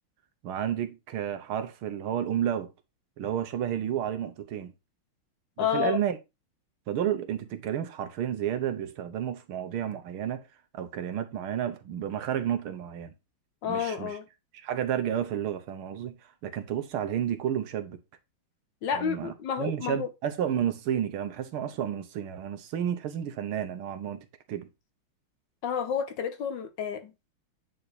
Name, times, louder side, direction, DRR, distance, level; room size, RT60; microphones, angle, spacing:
voice 1, 0.4-2.7 3.2-4.7 5.6-6.2 6.9-10.4 10.7-13.1 13.7-14.2 14.6-16.2 16.4-18.0 18.9-24.7, right 10 dB, 90° right, 1.8 m, -31 dB
voice 2, 5.6-6.0 13.6-14.2 18.8-20.1 25.6-27.3, left 8 dB, 65° left, 1.6 m, -30 dB
9.6 x 3.9 x 4.2 m
omnidirectional pair, 2.3 m